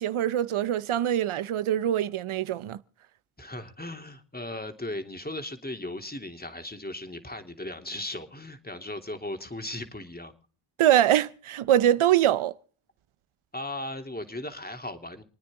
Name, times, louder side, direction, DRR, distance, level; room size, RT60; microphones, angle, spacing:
voice 1, 0.0-2.8 10.8-12.5, right 11 dB, 80° right, 0.8 m, -23 dB
voice 2, 3.4-10.3 13.5-15.2, left 1 dB, 20° left, 3.1 m, -37 dB
28.5 x 9.6 x 3.7 m
cardioid pair, 45°, 49 cm